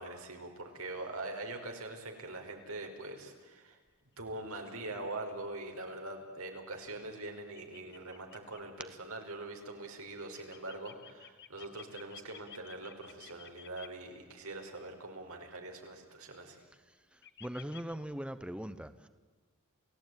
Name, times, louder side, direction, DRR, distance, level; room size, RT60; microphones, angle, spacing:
voice 1, 0.0-3.8 4.2-16.6, right 2 dB, 90° right, 3 dB, 4.4 m, -43 dB
sound 1, 7.2-7.3 7.6-8.6 10.2-13.9 16.6-16.8 17.2-17.9, left 9 dB, 55° left, 1.2 m, -53 dB
voice 2, 17.1-19.1, equal, 5° right, 11 dB, 0.8 m, -41 dB
29.0 x 17.0 x 9.2 m, 1.3 s
head